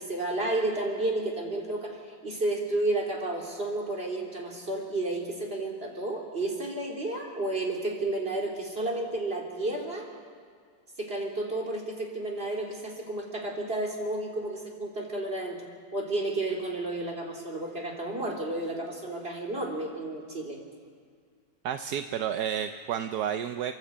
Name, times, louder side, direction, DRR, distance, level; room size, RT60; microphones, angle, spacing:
voice 1, 0.0-2.0 2.2-10.1 11.0-15.6 15.9-20.6, right 2 dB, 35° right, -1 dB, 3.5 m, -31 dB
voice 2, 21.6-23.7, right 9 dB, 75° right, 8 dB, 1.2 m, -31 dB
29.0 x 11.0 x 8.5 m, 2.1 s
omnidirectional pair, 1.7 m